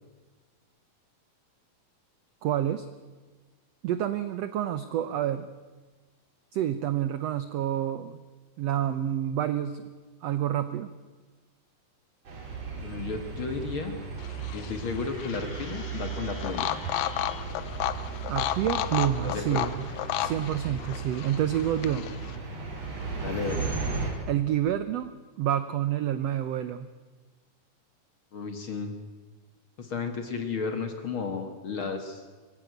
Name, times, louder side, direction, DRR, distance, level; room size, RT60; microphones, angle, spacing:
voice 1, 2.4-2.9 3.8-5.5 6.5-8.2 8.6-9.8 10.2-10.9 18.3-19.7 20.2-22.1 24.3-26.9, right 11 dB, 80° right, 12 dB, 1.4 m, -28 dB
Calle trafico, 12.2-24.1, right 4 dB, 50° right, 4.8 m, -36 dB
voice 2, 12.8-14.0 14.5-16.8 19.2-19.7 23.2-23.7 28.3-29.0 29.8-32.3, left 5 dB, 45° left, 6 dB, 1.9 m, -33 dB
sound 1, 14.2-22.4, left 12 dB, 85° left, 2.5 m, -33 dB
23.0 x 15.0 x 9.2 m, 1.3 s
omnidirectional pair, 3.9 m